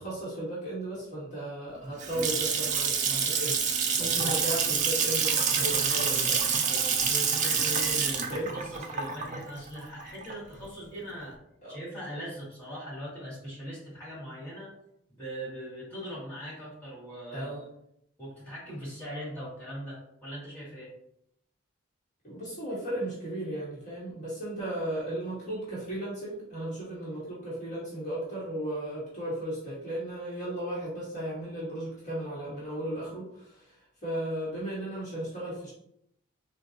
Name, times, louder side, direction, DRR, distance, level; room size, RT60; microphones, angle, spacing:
voice 1, 0.0-6.7 8.3-8.5 11.6-11.8 17.3-17.6 22.2-33.8 34.0-35.7, right 1 dB, 35° left, -9 dB, 1.1 m, -35 dB
Water tap faucet / Sink (filling or washing) / Splash splatter, 1.8-10.6, right 6 dB, 35° right, 0.3 m, -27 dB
voice 2, 4.0-4.3 6.7-11.4 11.7-14.7 15.1-17.6 18.2-20.9, equal, 10° left, -8 dB, 1.4 m, -40 dB
3.8 x 2.2 x 2.7 m, 0.75 s
head